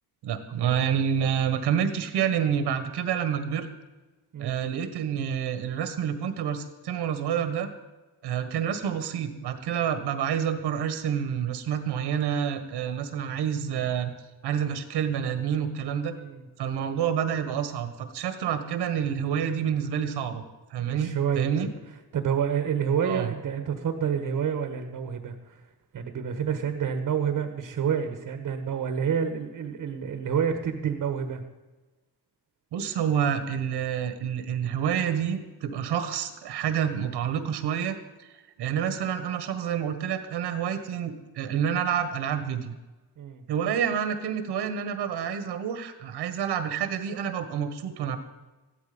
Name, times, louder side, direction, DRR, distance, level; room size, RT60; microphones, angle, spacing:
voice 1, 0.2-3.7 4.4-7.7 8.2-14.1 14.4-16.1 16.6-20.4 20.7-21.7 23.0-23.3 32.7-38.3 38.6-42.7 43.5-48.2, right 8 dB, 85° right, 9 dB, 1.6 m, -28 dB
voice 2, 20.8-21.7 22.1-25.6 25.9-31.4 43.2-43.4, right 7 dB, 50° right, 7 dB, 1.4 m, -28 dB
15.0 x 12.5 x 5.3 m, 1.2 s
cardioid pair, 140°, 39 cm